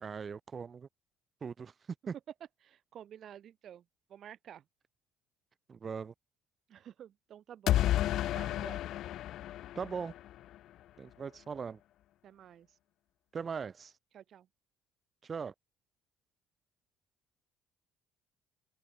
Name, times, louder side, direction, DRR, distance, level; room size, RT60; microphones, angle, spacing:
voice 1, 0.0-0.9 1.4-1.7 2.1-2.2 5.7-6.1 9.7-10.1 11.0-11.8 13.3-13.9 15.2-15.5, right 6 dB, 35° right, 1.2 m, -39 dB
voice 2, 2.6-3.8 4.1-4.6 6.7-8.8 12.2-12.8 14.1-14.5, right 10 dB, 55° right, 0.7 m, -51 dB
sound 1, 7.7-10.6, left 13 dB, 65° left, 0.4 m, -31 dB
supercardioid pair, 80°, 0 cm